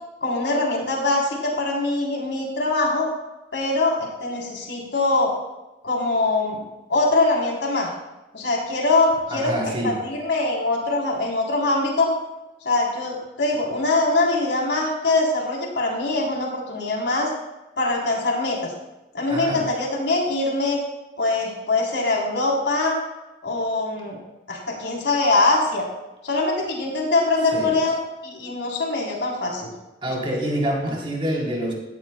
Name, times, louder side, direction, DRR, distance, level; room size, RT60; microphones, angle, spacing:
voice 1, 0.2-3.1 3.5-5.3 5.8-6.6 6.9-7.9 8.3-12.1 12.6-17.3 17.8-18.7 19.1-20.8 21.2-23.0 23.4-24.2 24.5-25.8 26.2-29.7, left 2 dB, 80° left, -1 dB, 3.5 m, -23 dB
voice 2, 9.3-10.0 19.3-19.7 27.5-27.7 30.0-31.7, right 1 dB, 30° right, -2 dB, 3.5 m, -26 dB
16.5 x 15.0 x 2.2 m, 1.0 s
head